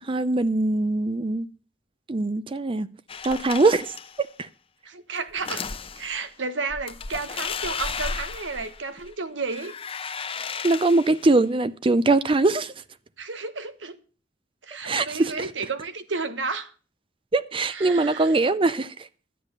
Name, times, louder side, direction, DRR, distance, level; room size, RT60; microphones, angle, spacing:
voice 1, 0.1-1.5 2.1-2.9 3.2-3.9 4.4-4.5 10.6-12.7 14.8-15.5 17.3-18.9, right 2 dB, 30° right, 0.5 m, -22 dB
sound 1, 3.1-4.2 5.3-6.2 6.7-9.1 9.4-11.3, left 5 dB, 30° left, 0.7 m, -34 dB
voice 2, 4.9-5.6 6.0-9.7 13.2-14.0 14.6-16.7 17.7-18.3, right 4 dB, 80° right, 1.3 m, -32 dB
11.5 x 8.2 x 6.8 m
head